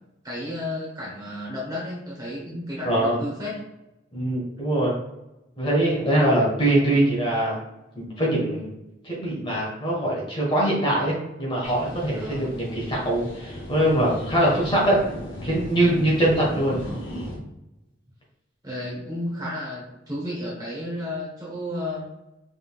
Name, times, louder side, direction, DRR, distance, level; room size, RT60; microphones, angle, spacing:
voice 1, 0.2-3.6 12.1-12.6 16.5-16.9 18.6-22.1, left 1 dB, 20° right, -5 dB, 1.1 m, -33 dB
voice 2, 2.8-3.2 4.1-5.0 5.6-7.6 7.9-8.7 9.0-15.0 15.4-16.8, right 1 dB, 25° left, -5 dB, 1.5 m, -23 dB
sound 1, 11.6-17.4, equal, 80° left, 1.1 m, -36 dB
5.2 x 3.6 x 2.4 m, 0.92 s
head